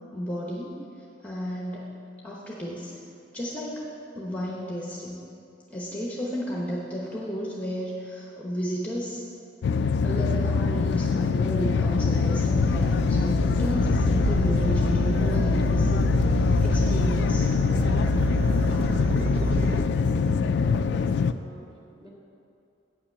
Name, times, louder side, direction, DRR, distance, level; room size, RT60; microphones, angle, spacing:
voice 1, 0.1-0.8 1.2-1.8 2.2-2.9 3.3-3.9 4.1-5.2 5.7-9.2 10.0-17.5, equal, 10° left, -4 dB, 1.0 m, -33 dB
sound 1, 9.6-21.3, left 5 dB, 65° left, 0.3 m, -24 dB
sound 2, 12.6-19.8, right 2 dB, 55° right, 0.5 m, -28 dB
voice 2, 20.5-22.1, left 2 dB, 25° right, -5 dB, 1.8 m, -49 dB
9.0 x 5.8 x 6.9 m, 2.7 s
head